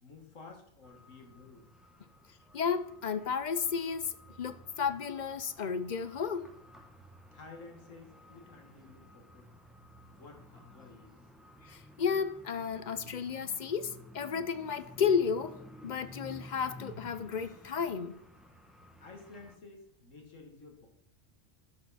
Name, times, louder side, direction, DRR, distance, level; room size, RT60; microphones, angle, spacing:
voice 1, 0.0-1.7 7.3-9.5 10.1-11.2 19.0-20.9, left 3 dB, 85° left, 2.2 m, -52 dB
sound 1, 0.8-19.6, equal, ahead, 0.9 m, -54 dB
voice 2, 2.5-6.5 11.7-15.6 15.8-18.1, left 6 dB, 50° left, 0.6 m, -33 dB
12.0 x 7.0 x 4.1 m
omnidirectional pair, 1.3 m